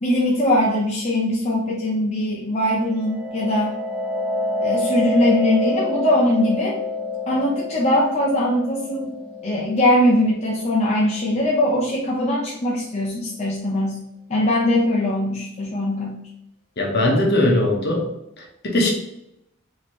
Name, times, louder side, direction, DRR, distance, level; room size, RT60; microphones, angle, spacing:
voice 1, 0.0-3.7 4.6-6.8 7.3-9.1 9.4-14.0 14.3-16.2, left 1 dB, 30° left, -4 dB, 0.6 m, -21 dB
sound 1, 2.7-12.2, left 2 dB, 20° right, 1.2 m, -28 dB
voice 2, 16.8-18.9, left 1 dB, 50° left, 0 dB, 0.9 m, -20 dB
4.3 x 2.9 x 3.0 m, 0.81 s
head